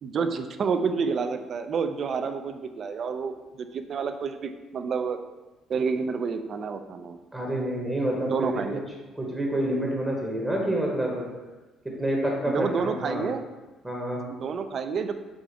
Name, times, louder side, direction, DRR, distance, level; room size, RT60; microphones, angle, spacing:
voice 1, 0.0-5.2 5.7-7.2 8.3-8.8 12.5-13.4 14.3-15.2, right 5 dB, 50° right, 8 dB, 0.3 m, -29 dB
voice 2, 7.3-8.6 9.2-11.3 11.8-13.3 13.8-14.2, right 1 dB, 10° right, -2 dB, 0.8 m, -28 dB
4.8 x 2.4 x 3.8 m, 1.2 s
cardioid pair, 95°, 0 cm